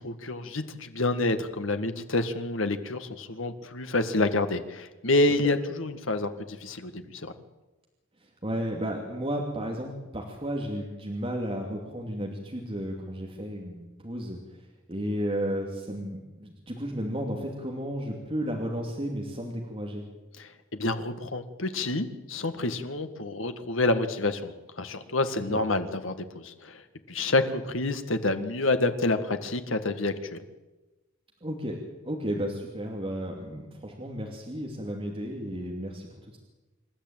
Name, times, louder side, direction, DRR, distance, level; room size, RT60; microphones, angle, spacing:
voice 1, 0.0-7.3 20.4-26.8 27.1-30.4, left 2 dB, 70° left, 8 dB, 1.8 m, -28 dB
voice 2, 8.2-14.6 14.9-20.0 25.5-25.6 31.4-31.8 32.0-36.4, equal, 25° right, 0 dB, 2.8 m, -33 dB
27.0 x 13.5 x 9.0 m, 1.1 s
head